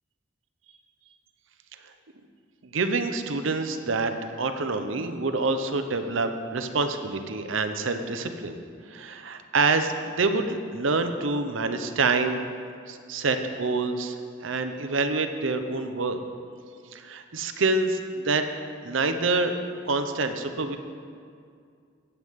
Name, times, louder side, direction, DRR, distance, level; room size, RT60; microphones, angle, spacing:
voice 1, 2.6-4.1 4.4-8.6 8.9-12.4 12.9-14.2 14.4-16.2 16.9-18.5 18.8-19.5 19.9-20.8, right 3 dB, 70° right, 7 dB, 0.8 m, -26 dB
17.0 x 8.1 x 3.6 m, 2.2 s
head